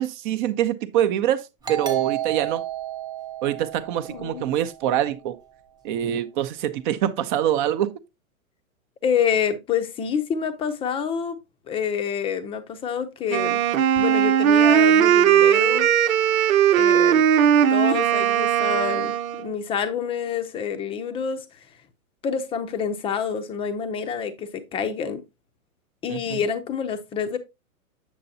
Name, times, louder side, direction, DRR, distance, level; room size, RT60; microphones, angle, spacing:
voice 1, 0.0-2.6 3.4-5.4 5.8-7.9 26.1-26.4, right 11 dB, 35° right, 0.8 m, -25 dB
Doorbell, 1.6-5.0, right 12 dB, 10° right, 0.9 m, -31 dB
voice 2, 4.1-4.6 9.0-11.4 11.7-13.6 14.0-15.9 16.7-17.3 17.7-21.4 22.2-25.2 26.0-27.4, left 7 dB, 15° left, 0.7 m, -27 dB
Wind instrument woodwind instrument, 13.3-19.5, right 9 dB, 70° right, 1.1 m, -18 dB
8.4 x 6.8 x 2.7 m
hypercardioid pair, 140°, 42 cm